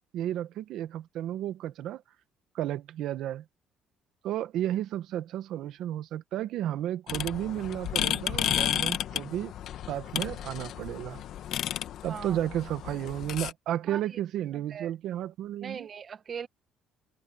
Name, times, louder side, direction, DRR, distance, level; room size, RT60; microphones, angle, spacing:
voice 1, 0.1-2.0 2.5-3.4 4.2-9.5 9.9-11.2 12.0-15.9, right 12 dB, 70° right, 1.3 m, -33 dB
sound 1, 7.1-13.5, left 11 dB, 65° left, 1.5 m, -32 dB
voice 2, 15.6-16.5, right 7 dB, 40° right, 1.1 m, -39 dB
cardioid pair, 120°, 0 cm